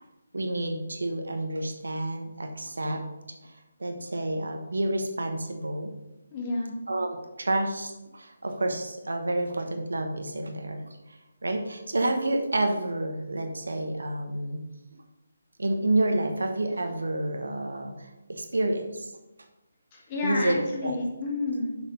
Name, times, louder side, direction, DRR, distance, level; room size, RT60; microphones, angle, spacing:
voice 1, 0.3-3.0 3.4-3.5 3.8-5.9 6.9-14.6 15.6-19.1 20.2-20.9, right 1 dB, 65° right, 5 dB, 1.1 m, -29 dB
voice 2, 6.3-6.8 19.9-21.8, left 2 dB, 25° left, -3 dB, 2.1 m, -30 dB
7.1 x 6.4 x 5.3 m, 1.0 s
figure-of-eight pair, 145°, 0 cm